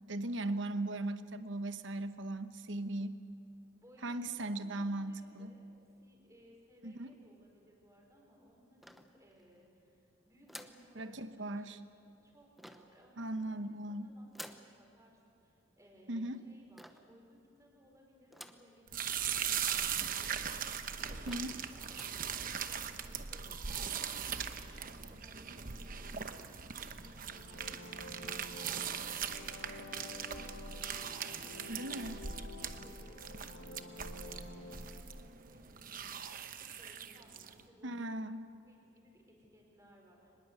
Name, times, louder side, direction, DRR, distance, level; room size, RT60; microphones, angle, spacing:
voice 1, 0.1-3.2 4.0-5.5 6.8-7.1 11.0-11.8 13.2-14.1 16.1-16.4 21.3-21.6 31.7-32.3 37.8-38.5, right 1 dB, 65° right, 10 dB, 1.0 m, -38 dB
voice 2, 3.7-5.7 6.0-23.6 24.0-32.0 32.5-33.9 34.2-36.3 36.6-38.1 38.6-40.3, equal, 15° right, 0 dB, 4.8 m, -63 dB
sound 1, 8.8-9.6 10.5-10.9 12.6-13.0 14.3-14.7 16.8-17.2 18.3-18.7 19.2-19.3 19.5-19.6 20.4-20.5 20.9-21.0 21.3-21.6 21.9-22.2, equal, ahead, 0.8 m, -51 dB
sound 2, 18.9-37.6, right 7 dB, 45° right, 0.9 m, -40 dB
sound 3, 27.1-35.0, left 2 dB, 65° left, 2.6 m, -50 dB
25.0 x 20.5 x 8.1 m, 2.7 s
head